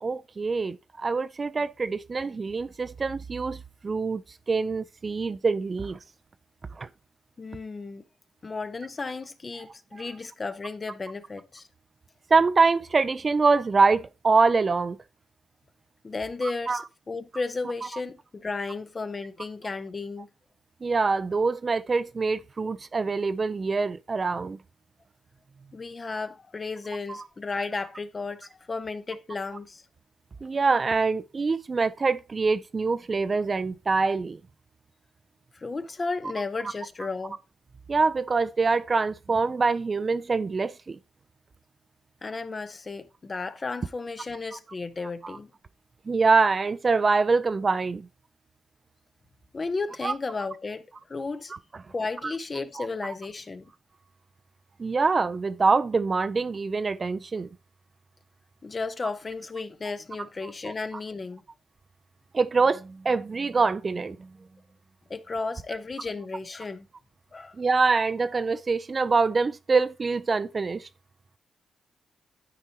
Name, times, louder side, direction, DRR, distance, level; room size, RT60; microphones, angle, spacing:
voice 1, 0.0-4.2 4.5-6.0 6.8-6.9 12.3-15.0 16.7-16.8 20.8-24.6 27.1-27.3 30.4-34.4 37.9-41.0 45.2-45.4 46.1-48.1 50.0-50.1 52.2-52.3 52.8-52.9 54.8-57.5 60.7-60.8 62.3-64.3 67.6-70.9, right 4 dB, 40° right, 0.5 m, -24 dB
voice 2, 7.4-8.0 8.4-11.7 16.0-20.3 25.7-29.8 35.5-37.4 42.2-45.5 49.5-51.5 51.9-53.7 58.6-61.4 65.1-66.9 67.3-67.6, left 3 dB, 40° left, 0.9 m, -34 dB
12.0 x 4.5 x 2.8 m
supercardioid pair, 55°, 0 cm